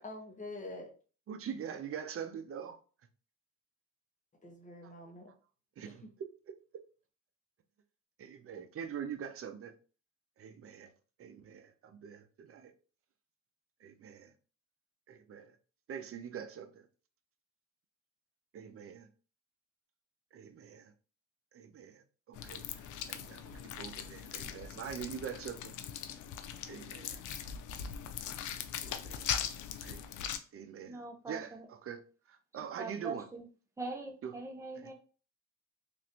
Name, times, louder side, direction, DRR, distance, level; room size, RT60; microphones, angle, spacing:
voice 1, 0.0-0.9 4.4-5.3 5.9-6.1, left 2 dB, 25° left, 0.8 m, -46 dB
voice 2, 1.3-2.8 4.8-4.9 5.8-6.0 8.2-9.7 10.4-10.9 11.2-12.7 13.8-14.3 15.1-15.6 15.9-16.9 18.5-19.1 20.3-20.9 21.5-22.0 22.3-25.7 26.7-27.2 28.8-29.3 29.8-30.0 30.5-31.0 31.3-32.0 32.3-33.3 34.2-34.3 34.8-34.9, right 8 dB, 50° right, 0.6 m, -44 dB
sound 1, 22.3-30.4, left 9 dB, 80° left, 0.5 m, -40 dB
voice 3, 30.9-31.7 32.8-33.5 33.8-34.9, right 3 dB, 10° right, 0.8 m, -42 dB
3.1 x 2.5 x 2.8 m
cardioid pair, 90°, 30 cm